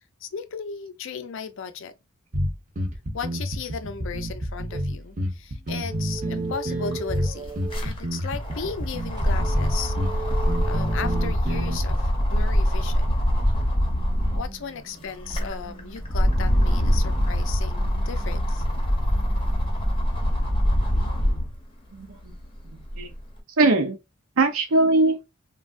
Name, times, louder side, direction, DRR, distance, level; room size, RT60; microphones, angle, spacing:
voice 1, 0.2-1.9 3.1-9.9 10.7-13.1 14.4-18.6, left 6 dB, 60° left, 0.4 m, -36 dB
sound 1, 2.3-11.9, equal, 35° right, 0.7 m, -29 dB
sound 2, 4.7-4.9 5.7-7.9 9.2-11.3 13.7-21.5, right 4 dB, 20° right, 0.3 m, -40 dB
sound 3, 6.4-6.5 6.7-14.5 15.0-21.6 22.1-23.2, equal, 25° left, 0.7 m, -24 dB
voice 2, 21.9-22.3 22.7-23.1 23.6-24.0 24.4-25.2, right 2 dB, 80° right, 0.6 m, -21 dB
3.2 x 2.3 x 2.4 m
head